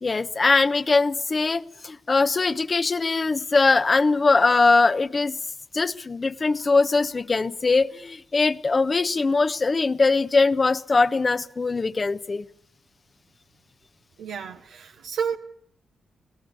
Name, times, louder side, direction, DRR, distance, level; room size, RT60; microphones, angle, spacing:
voice 1, 0.0-5.4 5.7-12.4, left 3 dB, 40° left, 1.1 m, -21 dB
voice 2, 14.2-15.4, right 7 dB, 80° right, 1.1 m, -30 dB
25.5 x 18.0 x 8.5 m
supercardioid pair, 45°, 0 cm